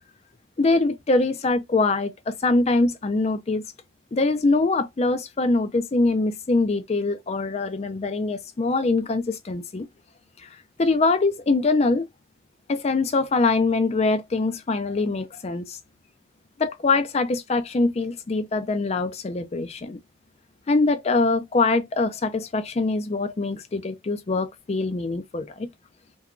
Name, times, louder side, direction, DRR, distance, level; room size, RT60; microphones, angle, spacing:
voice 1, 0.6-3.6 4.1-9.9 10.4-10.5 10.8-12.1 12.7-15.8 16.6-20.0 20.7-25.7, left 3 dB, 35° left, 0.4 m, -23 dB
2.9 x 2.2 x 2.4 m
head